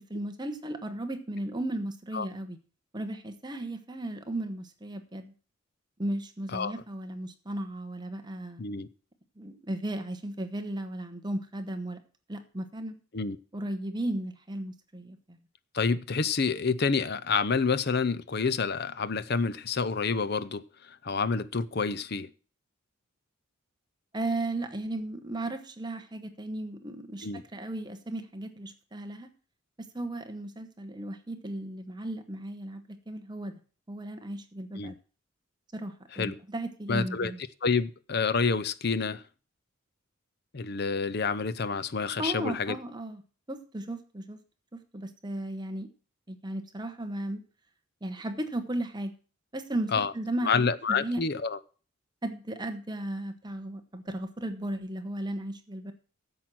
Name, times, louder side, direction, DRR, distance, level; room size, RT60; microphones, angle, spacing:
voice 1, 0.1-2.6 2.9-5.3 6.0-8.6 9.4-12.0 12.3-12.9 13.5-15.4 24.1-29.3 29.8-33.5 33.9-35.0 35.7-37.4 42.2-43.2 43.5-44.4 44.7-45.9 46.3-47.4 48.0-49.1 49.5-51.2 52.2-55.9, right 1 dB, 20° right, 1.0 m, -35 dB
voice 2, 15.7-22.3 27.2-27.4 34.7-34.9 36.1-36.3 36.9-37.3 37.6-39.2 40.5-42.8 49.9-50.1 50.4-51.6, left 5 dB, 50° left, 0.6 m, -28 dB
10.5 x 7.5 x 6.1 m
head